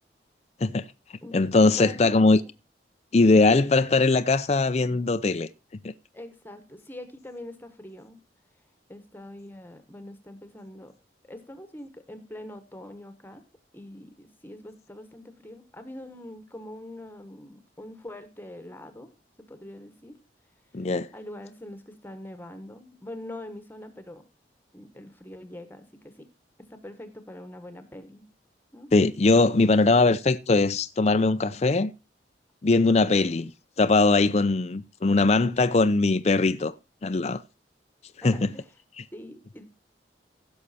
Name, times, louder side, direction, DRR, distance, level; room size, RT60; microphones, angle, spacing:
voice 1, 1.3-2.4 3.1-5.5 5.8-5.9 20.7-21.1 28.9-31.9 32.6-33.5 33.8-36.7 37.0-37.4 38.2-38.5, left 3 dB, 35° left, 0.5 m, -21 dB
voice 2, 6.1-8.2 8.9-10.9 11.2-13.4 13.7-19.1 19.4-20.2 20.7-24.2 24.7-26.3 26.7-28.3 28.7-28.9 38.2-38.7 39.1-39.6, left 1 dB, 10° left, 1.2 m, -43 dB
16.0 x 6.5 x 4.1 m
head